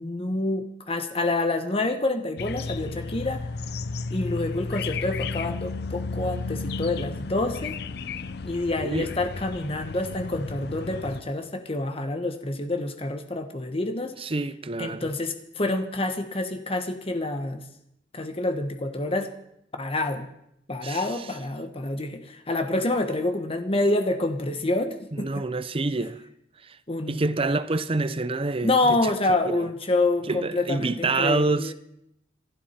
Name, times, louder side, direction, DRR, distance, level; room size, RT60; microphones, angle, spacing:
voice 1, 0.0-3.5 4.1-7.8 8.4-14.1 14.8-17.6 18.1-19.3 19.7-20.3 20.7-25.4 26.9-27.3 28.6-31.7, left 2 dB, 35° left, 1.2 m, -27 dB
sound 1, 2.4-11.2, left 3 dB, 65° left, 0.6 m, -33 dB
voice 2, 8.8-9.1 14.2-15.1 20.8-21.0 25.1-26.2 27.1-29.1 29.4-29.6 30.3-31.7, right 3 dB, 30° right, 0.7 m, -27 dB
27.0 x 12.0 x 4.4 m
head